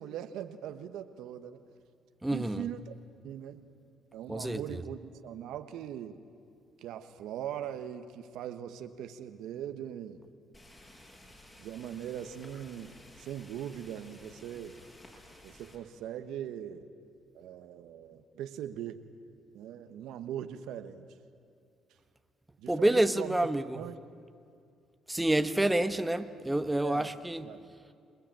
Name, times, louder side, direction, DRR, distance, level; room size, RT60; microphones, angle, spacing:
voice 1, 0.0-1.6 2.3-3.0 3.2-3.6 4.1-6.2 6.8-10.2 11.6-14.8 15.4-16.8 17.3-19.0 19.5-21.1 22.6-23.4 23.7-24.0 26.8-27.1 27.4-27.6, right 10 dB, 80° right, 9 dB, 1.2 m, -40 dB
voice 2, 2.2-2.6 4.3-4.8 22.7-23.6 25.1-27.5, right 1 dB, 10° right, 9 dB, 1.2 m, -28 dB
sound 1, 10.5-15.8, left 1 dB, 25° left, 6.9 m, -54 dB
27.5 x 20.0 x 9.0 m, 2.3 s
supercardioid pair, 70°, 0 cm